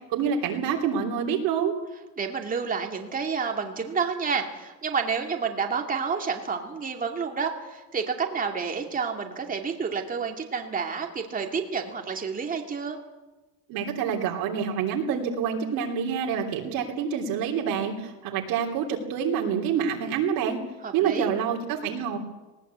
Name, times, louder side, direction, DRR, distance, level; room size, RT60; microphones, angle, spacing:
voice 1, 0.1-1.7 13.7-20.6 20.9-22.2, right 7 dB, 65° right, 0 dB, 3.3 m, -27 dB
voice 2, 2.2-13.0 20.8-21.3, right 5 dB, 20° right, 3 dB, 2.6 m, -29 dB
19.5 x 18.5 x 8.3 m, 1.1 s
cardioid pair, 145°, 38 cm